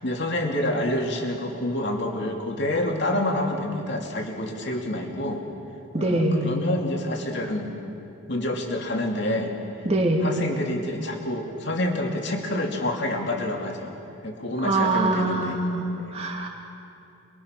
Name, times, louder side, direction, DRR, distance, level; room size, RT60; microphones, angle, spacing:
voice 1, 0.0-5.4 6.0-7.7 8.3-9.5 10.2-13.9 14.2-15.6 16.0-16.1, left 1 dB, 55° left, 1 dB, 2.7 m, -28 dB
voice 2, 5.9-6.6 9.9-10.3 14.6-16.5, right 2 dB, 30° right, 1 dB, 2.4 m, -24 dB
28.0 x 22.5 x 6.0 m, 2.7 s
head